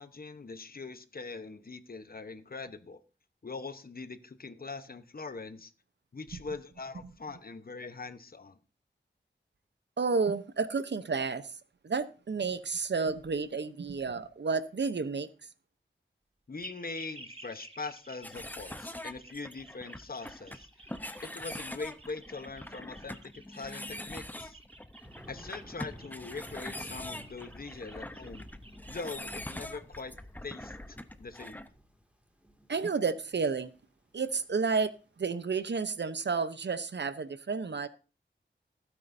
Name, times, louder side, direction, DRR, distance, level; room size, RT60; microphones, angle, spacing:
voice 1, 0.0-3.0 3.4-5.7 6.1-8.6 16.5-20.7 21.2-24.6 25.3-28.5 28.9-30.1 30.4-31.7, left 4 dB, 50° left, 1.0 m, -42 dB
voice 2, 10.0-11.5 11.8-15.3 32.7-33.7 34.1-37.9, right 4 dB, 65° right, 0.8 m, -31 dB
sound 1, 16.6-29.2, right 2 dB, 30° right, 1.2 m, -53 dB
sound 2, 18.2-31.7, left 1 dB, 10° left, 0.8 m, -43 dB
Thunder, 25.0-36.1, equal, 5° right, 2.3 m, -54 dB
16.0 x 9.3 x 2.7 m
wide cardioid pair, 95°, 20 cm